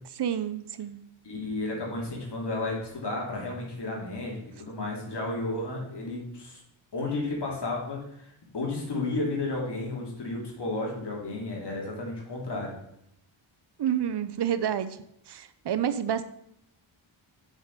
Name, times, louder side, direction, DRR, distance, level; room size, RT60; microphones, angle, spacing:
voice 1, 0.2-1.0 13.8-14.9 15.3-16.2, right 9 dB, 55° right, 12 dB, 0.8 m, -29 dB
voice 2, 1.2-6.6 6.9-12.8, left 2 dB, 55° left, -2 dB, 3.0 m, -33 dB
7.4 x 6.4 x 5.3 m, 0.76 s
wide cardioid pair, 110°, 48 cm